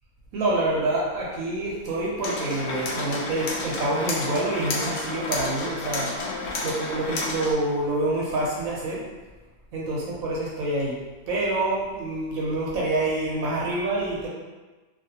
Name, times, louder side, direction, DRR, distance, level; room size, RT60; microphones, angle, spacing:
voice 1, 0.3-6.1 6.6-9.0 9.7-11.0 11.3-14.3, right 2 dB, 70° right, -4 dB, 0.9 m, -27 dB
sound 1, 2.2-7.5, left 2 dB, 70° left, 0.8 m, -31 dB
2.5 x 2.5 x 2.7 m, 1.2 s
omnidirectional pair, 1.6 m